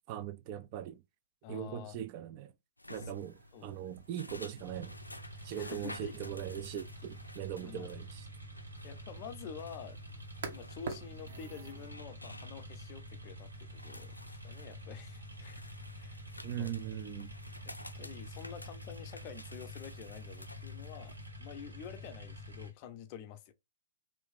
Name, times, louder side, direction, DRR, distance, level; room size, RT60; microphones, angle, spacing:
voice 1, 0.1-1.0 1.5-2.5 2.9-3.4 3.6-4.9 5.4-8.2 16.4-17.3, right 11 dB, 40° right, 0.3 m, -40 dB
voice 2, 1.4-2.0 2.9-3.1 3.5-3.8 5.3-6.2 7.6-8.0 8.8-10.0 10.5-16.2 16.6-16.7 17.6-23.5, left 8 dB, 40° left, 0.5 m, -48 dB
sound 1, 2.8-21.3, left 1 dB, 90° left, 0.4 m, -53 dB
sound 2, 3.2-11.9, right 5 dB, 55° right, 0.7 m, -51 dB
sound 3, 4.6-22.7, equal, 90° right, 1.5 m, -48 dB
3.0 x 2.6 x 3.4 m
figure-of-eight pair, 110°, 0 cm